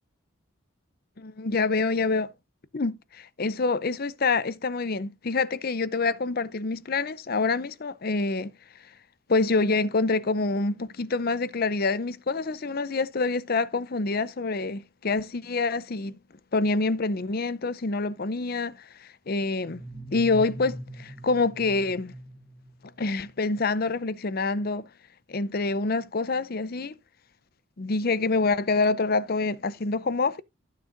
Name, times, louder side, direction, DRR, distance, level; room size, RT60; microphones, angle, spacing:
voice 1, 1.2-2.3 2.7-8.5 9.3-16.2 16.5-19.8 20.1-22.1 23.0-24.9 25.3-26.9 27.8-30.4, left 3 dB, 45° left, 0.6 m, -26 dB
sound 1, 19.7-23.3, right 1 dB, 5° left, 0.8 m, -42 dB
15.0 x 6.6 x 2.6 m
head